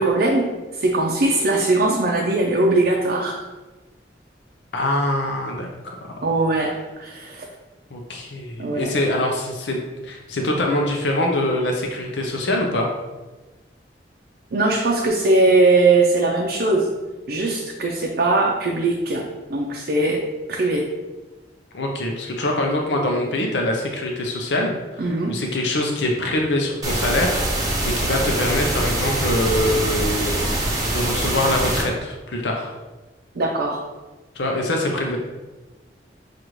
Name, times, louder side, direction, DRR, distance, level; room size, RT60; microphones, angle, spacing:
voice 1, 0.0-3.4 6.2-7.5 8.6-8.9 14.5-16.9 17.3-20.8 25.0-25.3 33.3-33.8, right 2 dB, 60° right, -1 dB, 0.5 m, -20 dB
voice 2, 4.7-6.1 7.9-12.9 21.7-24.8 25.3-30.7 30.9-32.7 34.4-35.2, left 1 dB, 75° left, 1 dB, 0.6 m, -24 dB
sound 1, 26.8-31.8, right 1 dB, 20° right, 0.8 m, -23 dB
6.5 x 2.4 x 3.0 m, 1.2 s
head